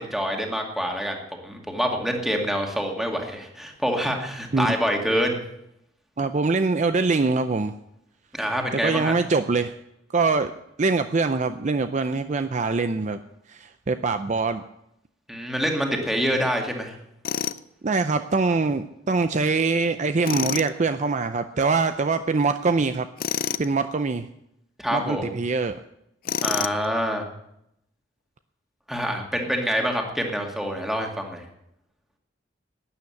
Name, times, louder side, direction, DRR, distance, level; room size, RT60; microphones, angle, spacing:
voice 1, 0.0-5.4 8.3-9.1 15.3-17.0 24.8-25.4 26.4-27.2 28.9-31.4, equal, ahead, 2 dB, 2.1 m, -26 dB
voice 2, 6.2-7.7 8.7-9.7 10.1-10.5 10.8-13.2 13.5-14.6 17.8-23.1 23.6-24.3 24.9-25.8, right 4 dB, 40° right, 10 dB, 0.5 m, -23 dB
Tools, 17.2-17.6 20.2-20.7 23.2-23.7 26.2-26.8, left 8 dB, 50° left, 0.5 m, -27 dB
12.5 x 9.7 x 8.5 m, 0.80 s
head